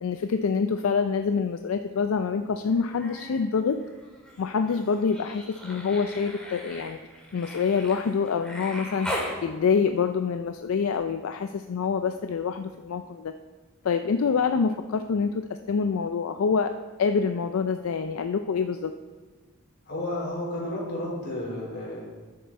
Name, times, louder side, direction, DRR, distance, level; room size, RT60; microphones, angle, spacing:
voice 1, 0.0-3.8 4.4-7.0 7.3-13.3 13.8-16.7 17.0-18.9, left 5 dB, 75° left, 8 dB, 0.4 m, -26 dB
Human voice, 2.7-3.4 3.7-9.3 10.9-11.0, equal, 5° left, 2.0 m, -38 dB
voice 2, 19.9-22.0, left 1 dB, 55° left, -5 dB, 3.6 m, -32 dB
11.5 x 7.0 x 4.3 m, 1.3 s
head